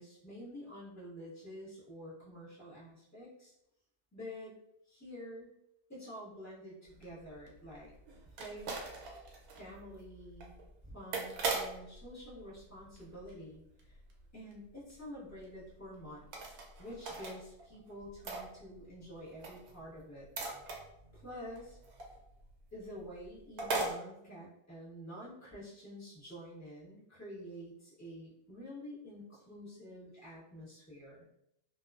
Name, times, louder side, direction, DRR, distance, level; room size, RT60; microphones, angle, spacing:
voice 1, 0.0-3.5 4.1-4.6 4.9-5.5 5.9-7.9 8.4-8.9 9.6-10.5 10.8-14.0 14.3-20.3 21.1-21.8 22.7-31.3, equal, 15° left, -9 dB, 1.0 m, -48 dB
sound 1, 6.9-13.5 13.8-14.2 14.5-14.6 14.9-15.0 15.4-15.5 16.2-17.3 17.6-19.0 19.3-22.5 22.8-22.9 23.2-23.3 23.6-23.9, right 3 dB, 85° right, 1.1 m, -40 dB
2.4 x 2.3 x 2.3 m, 0.79 s
omnidirectional pair, 1.5 m